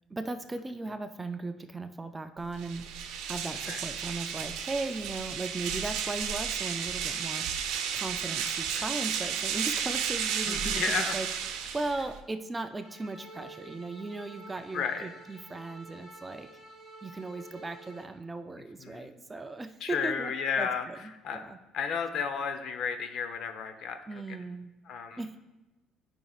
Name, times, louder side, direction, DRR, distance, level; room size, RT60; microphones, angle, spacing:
voice 1, 0.1-2.9 3.3-7.5 7.9-11.3 11.7-16.5 17.0-21.6 24.1-24.7 25.2-25.4, right 3 dB, 15° right, 8 dB, 0.4 m, -37 dB
sound 1, 2.5-12.2, right 7 dB, 90° right, 0.7 m, -33 dB
voice 2, 10.5-11.2 14.7-15.1 18.8-19.1 19.8-20.8 21.2-21.4 21.7-24.0 24.3-24.4 24.9-25.4, left 6 dB, 60° left, 8 dB, 0.7 m, -32 dB
sound 2, 12.8-18.0, right 2 dB, 15° left, 1.9 m, -50 dB
12.5 x 5.3 x 2.4 m, 1.1 s
cardioid pair, 130°, 0 cm